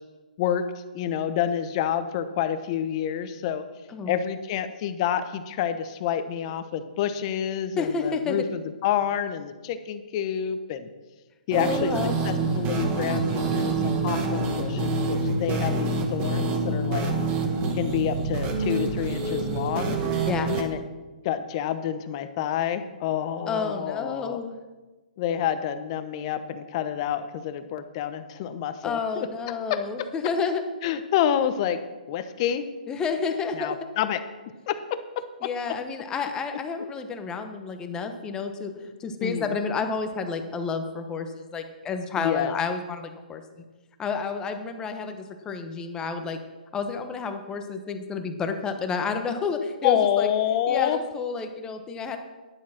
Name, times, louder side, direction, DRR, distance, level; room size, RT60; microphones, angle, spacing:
voice 1, 0.9-3.6 4.1-10.9 11.5-11.9 12.2-17.1 17.7-20.0 20.6-20.8 21.2-24.4 25.2-29.8 30.8-31.8 32.1-32.7 33.5-34.2 34.7-35.5 39.2-39.6 42.2-42.5 49.8-51.0, left 9 dB, 40° left, 10 dB, 1.0 m, -28 dB
voice 2, 7.8-8.4 11.6-12.2 20.3-20.6 23.5-24.6 28.8-30.6 32.9-33.7 35.4-43.6 44.0-46.4 46.7-50.3 50.7-52.2, left 5 dB, 15° left, 6 dB, 1.1 m, -30 dB
sound 1, 11.5-20.6, right 3 dB, 25° right, 1.7 m, -26 dB
11.0 x 7.3 x 5.9 m, 1.2 s
hypercardioid pair, 145°, 5 cm